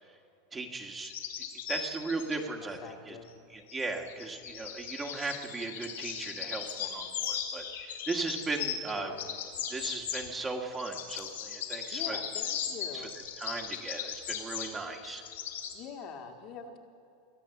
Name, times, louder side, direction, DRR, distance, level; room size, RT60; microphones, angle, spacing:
voice 1, 0.5-1.1 1.7-3.2 3.5-9.1 9.7-12.2 12.9-13.0 13.4-15.2, right 3 dB, 20° right, 2 dB, 1.8 m, -37 dB
sound 1, 1.0-2.4 3.7-8.9 9.2-10.3 10.7-15.8, left 8 dB, 85° left, 2.5 m, -38 dB
voice 2, 2.8-3.3 8.9-9.4 11.9-13.1 15.7-16.8, left 6 dB, 50° left, 2 dB, 1.7 m, -44 dB
22.5 x 8.5 x 7.1 m, 2.7 s
hypercardioid pair, 105°, 0 cm